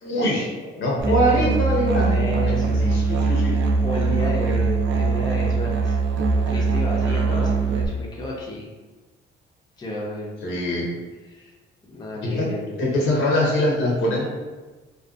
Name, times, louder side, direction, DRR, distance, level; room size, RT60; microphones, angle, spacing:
voice 1, 0.0-2.3 2.8-3.6 10.4-10.8 12.2-12.5 12.8-14.3, equal, 80° left, -3 dB, 0.8 m, -23 dB
voice 2, 1.0-1.5 2.1-2.8 3.8-6.0 6.5-8.7 9.8-10.9 11.2-11.5 11.9-12.9, left 1 dB, 20° left, -3 dB, 0.6 m, -31 dB
Musical instrument, 1.0-7.9, right 4 dB, 70° right, 0.4 m, -22 dB
2.5 x 2.3 x 2.4 m, 1.2 s
cardioid pair, 90°, 20 cm